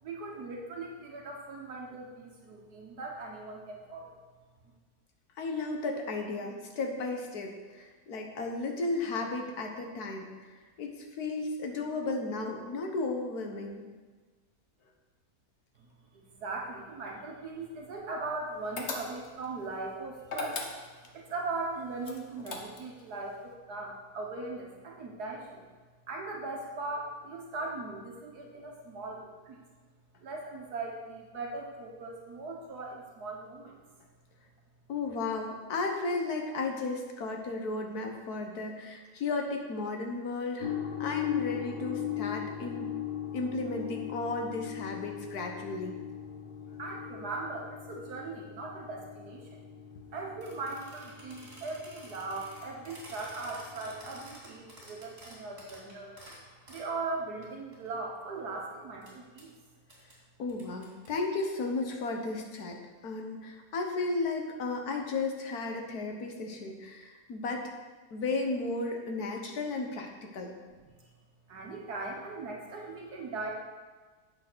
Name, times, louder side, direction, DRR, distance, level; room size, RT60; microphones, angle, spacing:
voice 1, 0.0-4.2 15.8-15.9 16.1-20.6 21.1-25.6 26.1-29.6 30.2-33.8 46.7-49.6 50.1-56.2 56.7-59.5 71.0-71.1 71.5-73.5, right 3 dB, 75° right, 0 dB, 1.8 m, -39 dB
voice 2, 5.4-13.8 34.9-42.9 43.3-46.0 60.4-62.8 63.0-67.7 68.1-70.5, left 3 dB, 70° left, 3 dB, 1.8 m, -34 dB
sound 1, 18.8-19.4 20.2-21.1 22.0-23.0, left 3 dB, 45° left, 1.4 m, -37 dB
sound 2, 40.6-54.3, left 10 dB, 90° left, 1.9 m, -40 dB
sound 3, 50.4-56.9 57.4-57.5 57.7-58.6 59.0-59.1 59.4-59.5 59.9-60.1 60.5-61.5, right 1 dB, 40° right, 3.3 m, -51 dB
9.0 x 7.3 x 6.2 m, 1.4 s
omnidirectional pair, 1.7 m